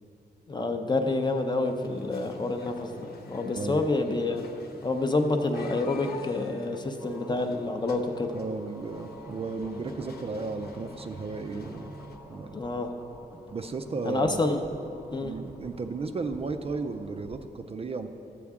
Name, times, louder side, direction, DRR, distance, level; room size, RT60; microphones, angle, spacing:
voice 1, 0.5-4.4 4.8-8.3 12.5-12.9 14.0-14.6 15.1-15.3, left 2 dB, 25° left, 5 dB, 0.6 m, -28 dB
sound 1, 1.2-12.2, left 2 dB, 65° left, 0.9 m, -47 dB
sound 2, 7.0-17.4, right 1 dB, 15° right, 0.7 m, -49 dB
voice 2, 8.3-11.9 12.3-12.6 13.5-14.4 15.2-18.1, right 4 dB, 35° right, 7 dB, 0.4 m, -34 dB
13.0 x 8.4 x 3.6 m, 2.9 s
wide cardioid pair, 170°, 17 cm